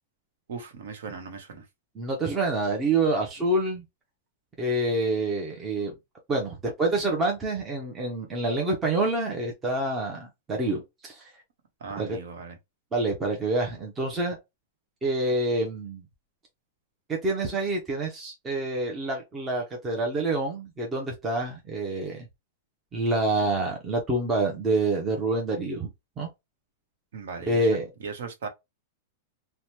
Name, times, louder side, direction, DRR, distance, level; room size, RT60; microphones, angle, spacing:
voice 1, 0.5-1.7 5.5-5.6 11.8-12.6 27.1-28.5, right 5 dB, 75° right, 1.0 m, -38 dB
voice 2, 2.0-3.8 4.6-5.9 6.3-11.3 12.0-12.2 12.9-14.4 15.0-16.0 17.1-22.3 22.9-25.9 26.2-26.3 27.5-27.8, right 2 dB, 15° right, 0.5 m, -27 dB
2.9 x 2.1 x 3.1 m
supercardioid pair, 175°, 0 cm